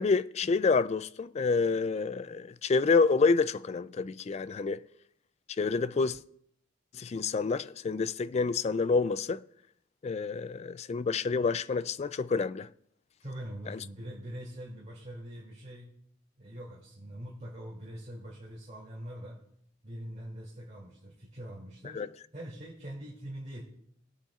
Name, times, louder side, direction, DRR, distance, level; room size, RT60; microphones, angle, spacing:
voice 1, 0.0-4.8 5.6-6.2 6.9-9.4 10.0-12.7 13.7-13.8 21.9-22.1, left 4 dB, 35° left, 0.3 m, -28 dB
voice 2, 13.2-15.9 16.4-19.4 19.8-22.0 22.3-23.6, right 1 dB, 35° right, 2.6 m, -43 dB
20.5 x 8.6 x 2.4 m
head